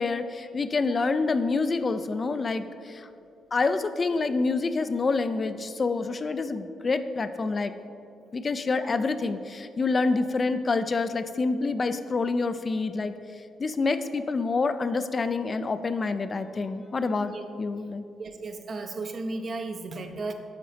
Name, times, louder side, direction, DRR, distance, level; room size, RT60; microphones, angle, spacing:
voice 1, 0.0-3.1 3.5-7.7 8.3-13.1 13.6-17.3 17.6-18.0, left 3 dB, 35° left, 11 dB, 0.3 m, -27 dB
voice 2, 18.2-20.3, right 3 dB, 45° right, 6 dB, 0.5 m, -34 dB
8.9 x 3.8 x 3.3 m, 2.5 s
cardioid pair, 90°, 0 cm